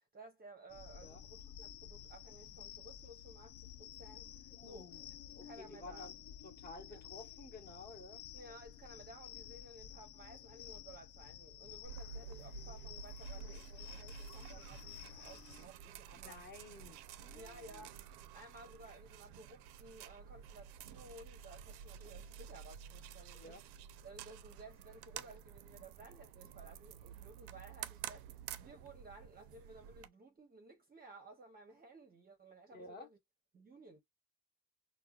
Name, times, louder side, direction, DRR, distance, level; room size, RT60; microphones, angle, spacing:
voice 1, 0.1-4.9 5.4-6.1 6.9-7.0 8.3-16.4 17.3-18.0 18.3-23.6 24.0-33.2 33.5-34.0, right 2 dB, 25° right, 0.7 m, -56 dB
sound 1, 0.7-15.7, left 10 dB, 50° left, 0.5 m, -53 dB
voice 2, 4.6-5.1 5.3-6.1 6.4-8.2 16.2-17.8 23.3-23.6 32.7-33.1, left 3 dB, 25° left, 0.9 m, -53 dB
sound 2, 11.8-30.1, right 8 dB, 85° right, 0.5 m, -51 dB
4.5 x 2.2 x 2.2 m
cardioid pair, 135°, 38 cm